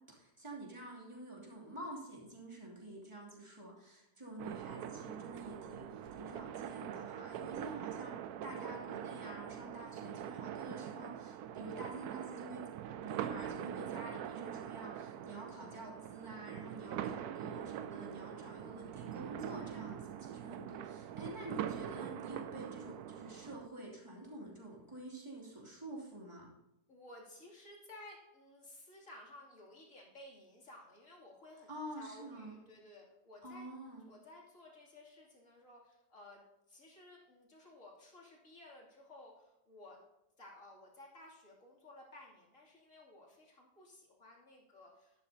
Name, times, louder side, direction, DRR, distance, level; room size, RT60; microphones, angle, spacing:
voice 1, 0.0-12.7 13.0-26.5 31.7-32.6 33.4-34.1, right 1 dB, 15° right, -4 dB, 2.7 m, -48 dB
sound 1, 4.4-23.7, right 10 dB, 75° right, 1.1 m, -43 dB
voice 2, 21.1-21.5 26.9-31.7 32.0-33.7 34.1-40.0 40.4-45.2, left 1 dB, 50° left, -3 dB, 3.1 m, -56 dB
12.0 x 11.5 x 2.8 m, 0.92 s
omnidirectional pair, 1.7 m